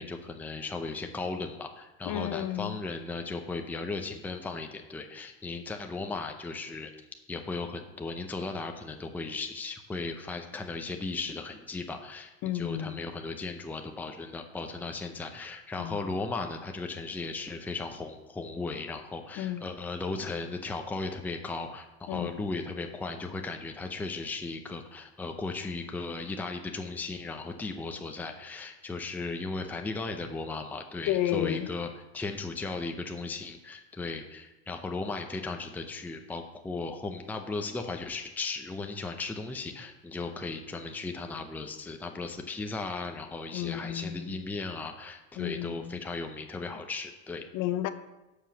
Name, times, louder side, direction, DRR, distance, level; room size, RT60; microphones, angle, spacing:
voice 1, 0.0-6.9 7.3-31.9 32.1-47.4, left 3 dB, 5° left, 0.6 m, -36 dB
voice 2, 2.0-2.8 12.4-13.0 15.8-16.0 19.4-19.7 22.1-22.4 31.1-31.7 43.5-44.3 45.4-46.0 47.5-47.9, left 12 dB, 50° left, 0.7 m, -32 dB
7.4 x 5.0 x 6.8 m
supercardioid pair, 125°, 42 cm